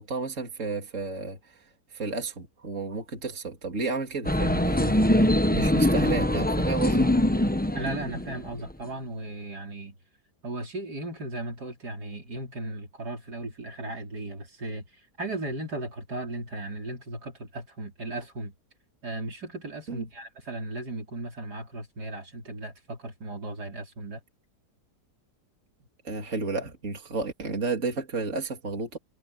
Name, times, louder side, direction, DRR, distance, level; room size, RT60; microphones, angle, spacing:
voice 1, 0.0-1.6 1.9-5.0 5.5-7.1 19.9-20.1 26.0-29.0, right 3 dB, 50° right, 3.1 m, -32 dB
sound 1, 4.2-8.7, left 1 dB, 5° left, 1.0 m, -23 dB
voice 2, 7.7-10.0 10.4-18.5 19.0-24.2, right 2 dB, 70° right, 4.8 m, -36 dB
omnidirectional pair, 1.8 m